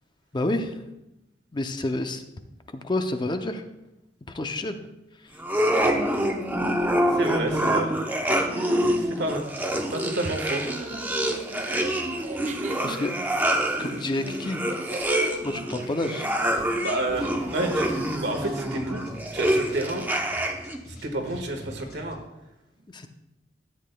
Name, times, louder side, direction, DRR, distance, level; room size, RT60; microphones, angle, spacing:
voice 1, 0.3-0.7 1.5-2.2 2.7-3.6 4.3-4.8 12.8-13.2 13.8-14.6 15.4-16.3 22.9-23.1, left 2 dB, 25° left, 7 dB, 0.5 m, -28 dB
sound 1, 5.4-20.8, right 1 dB, 10° right, 0.8 m, -26 dB
voice 2, 7.1-7.9 8.5-10.7 16.8-17.9 18.2-19.0 19.3-20.0 20.9-22.2, right 1 dB, 75° right, 3 dB, 1.5 m, -30 dB
sound 2, 10.2-18.7, right 3 dB, 40° right, 0.5 m, -40 dB
sound 3, 17.0-22.2, right 1 dB, 55° left, 2.2 m, -45 dB
13.5 x 8.5 x 2.2 m, 0.93 s
head